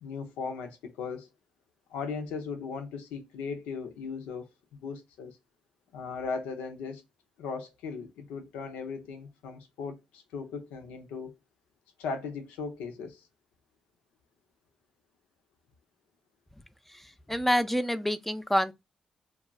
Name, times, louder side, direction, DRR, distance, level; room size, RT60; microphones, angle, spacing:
voice 1, 0.0-1.3 1.9-5.4 5.9-7.0 7.4-11.3 12.0-13.3, left 5 dB, 90° left, 0.5 m, -38 dB
voice 2, 17.3-18.7, equal, 10° left, 0.4 m, -26 dB
2.3 x 2.0 x 3.4 m
supercardioid pair, 45°, 2 cm